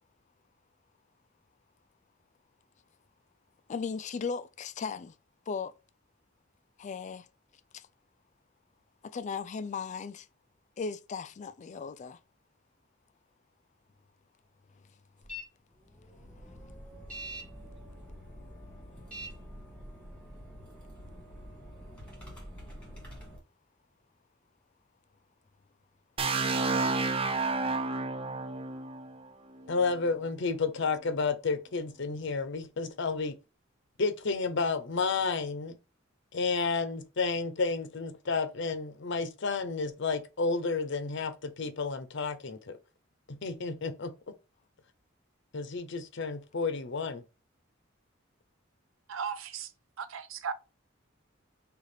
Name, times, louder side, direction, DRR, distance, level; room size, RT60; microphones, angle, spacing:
voice 1, 3.7-5.2 5.5-5.7 6.8-7.3 7.7-7.9 9.0-10.3 10.8-12.2 16.4-16.6, left 5 dB, 35° left, 0.3 m, -37 dB
sound 1, 15.2-15.4 15.8-23.4, equal, 5° left, 1.9 m, -46 dB
sound 2, 26.2-30.0, right 3 dB, 30° right, 0.5 m, -31 dB
voice 2, 29.7-33.3 34.0-35.8 36.3-42.8 43.3-44.3 45.5-47.2, left 4 dB, 65° left, 0.7 m, -31 dB
voice 3, 49.1-49.7 50.0-50.5, right 6 dB, 85° right, 0.6 m, -36 dB
6.4 x 2.5 x 3.4 m
head